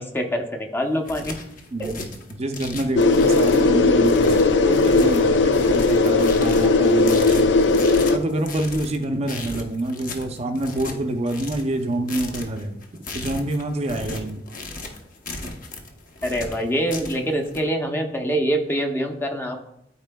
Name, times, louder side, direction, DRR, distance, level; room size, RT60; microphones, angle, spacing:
voice 1, 0.0-1.4 1.8-1.9 16.2-19.6, equal, 10° left, 3 dB, 0.6 m, -25 dB
sound 1, 0.8-17.6, left 2 dB, 50° left, 0.9 m, -36 dB
voice 2, 1.7-7.5 8.1-12.7 13.1-14.4, right 1 dB, 35° right, 4 dB, 0.5 m, -27 dB
sound 2, 3.0-8.2, left 3 dB, 70° left, 0.5 m, -17 dB
12.5 x 4.3 x 2.2 m, 0.79 s
head